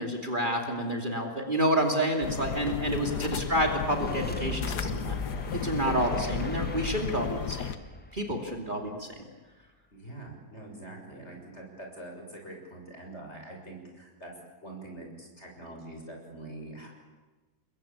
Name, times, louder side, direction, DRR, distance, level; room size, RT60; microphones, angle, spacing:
voice 1, 0.0-5.2 5.5-7.7 8.1-9.1, right 1 dB, 30° right, 2 dB, 2.8 m, -29 dB
sound 1, 2.2-7.8, left 7 dB, 85° left, 1.7 m, -34 dB
voice 2, 2.9-3.3 9.9-14.3 14.6-16.9, right 2 dB, 40° left, 1 dB, 6.9 m, -44 dB
sound 2, 3.6-8.9, left 2 dB, 10° left, 0.6 m, -39 dB
29.5 x 22.0 x 8.9 m, 1.2 s
omnidirectional pair, 1.7 m